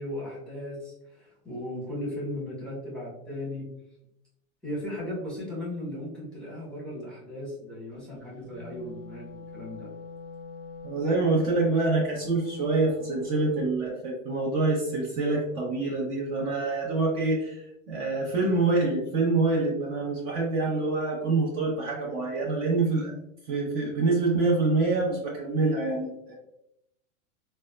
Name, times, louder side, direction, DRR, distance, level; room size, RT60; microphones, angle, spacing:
voice 1, 0.0-3.6 4.6-9.9, left 1 dB, ahead, -6 dB, 1.1 m, -36 dB
Wind instrument woodwind instrument, 8.4-13.5, left 4 dB, 65° right, 1.4 m, -43 dB
voice 2, 10.8-17.6 17.9-23.1 23.5-26.3, right 3 dB, 40° right, -3 dB, 0.8 m, -26 dB
3.4 x 2.2 x 2.2 m, 0.82 s
hypercardioid pair, 125°, 40 cm